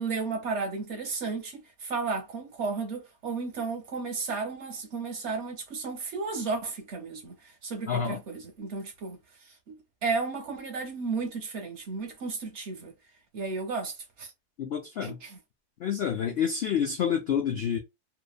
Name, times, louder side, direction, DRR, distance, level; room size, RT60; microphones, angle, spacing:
voice 1, 0.0-12.9 13.3-14.3 15.0-15.4, right 4 dB, 60° right, 0.8 m, -34 dB
voice 2, 7.9-8.2 14.6-15.2 15.8-17.8, left 8 dB, 75° left, 0.5 m, -28 dB
2.7 x 2.2 x 2.3 m
omnidirectional pair, 1.6 m